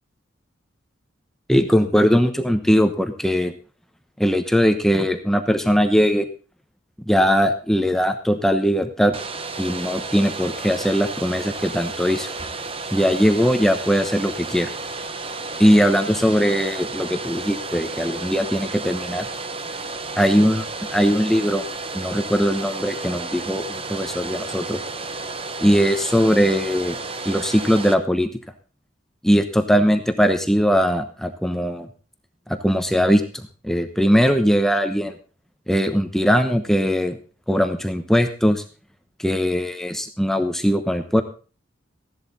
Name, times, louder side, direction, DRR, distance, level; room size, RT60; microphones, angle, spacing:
voice 1, 1.5-3.5 4.2-6.3 7.1-9.2 9.6-12.3 12.9-14.7 15.6-19.3 20.2-21.6 21.9-24.8 25.6-27.0 27.2-28.3 29.2-31.9 32.5-33.2 33.6-35.1 35.7-37.2 37.5-38.6 39.2-41.2, equal, ahead, 7 dB, 0.9 m, -20 dB
Domestic sounds home sounds, 9.1-27.9, right 3 dB, 30° right, 0.9 m, -32 dB
15.5 x 11.5 x 4.1 m, 0.36 s
head